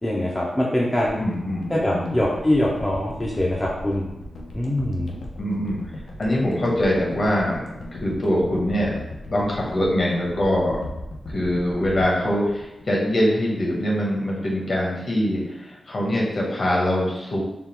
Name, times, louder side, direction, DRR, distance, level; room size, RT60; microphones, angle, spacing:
voice 1, 0.0-1.2 1.7-4.1 4.5-5.1, left 1 dB, 15° left, -4 dB, 0.4 m, -23 dB
sound 1, 1.0-13.4 13.7-13.8, left 1 dB, 80° left, 0.6 m, -38 dB
voice 2, 1.2-2.2 5.4-5.8 6.2-7.6 7.9-8.9 9.3-10.8 11.3-17.4, equal, 45° left, -3 dB, 0.9 m, -23 dB
3.6 x 2.2 x 4.3 m, 0.92 s
wide cardioid pair, 170°, 0 cm